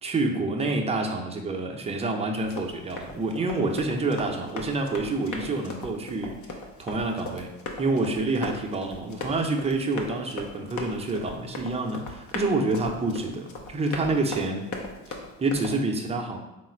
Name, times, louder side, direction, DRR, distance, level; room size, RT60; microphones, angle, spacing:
voice 1, 0.0-7.5 7.8-14.6 15.1-16.4, right 2 dB, 20° right, 2 dB, 0.5 m, -28 dB
Run, 2.4-15.8, left 3 dB, 60° left, 0.7 m, -39 dB
3.7 x 2.4 x 4.3 m, 0.97 s
cardioid pair, 110°, 33 cm